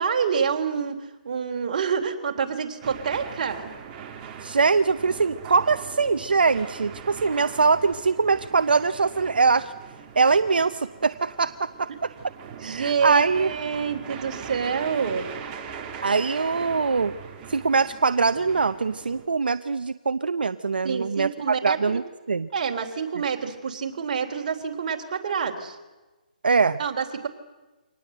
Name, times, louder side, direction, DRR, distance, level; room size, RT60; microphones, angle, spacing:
voice 1, 0.0-3.7 12.6-15.3 20.8-21.8 22.5-25.8 26.8-27.3, right 6 dB, 50° right, 4 dB, 3.4 m, -27 dB
sound 1, 2.8-19.3, right 7 dB, 25° right, 2.5 m, -41 dB
voice 2, 4.4-9.7 10.2-12.1 12.6-13.5 16.0-17.1 17.5-22.0 22.3-22.5 26.4-26.8, right 4 dB, 90° right, 11 dB, 0.7 m, -22 dB
25.0 x 19.5 x 7.9 m, 1.2 s
hypercardioid pair, 155°, 5 cm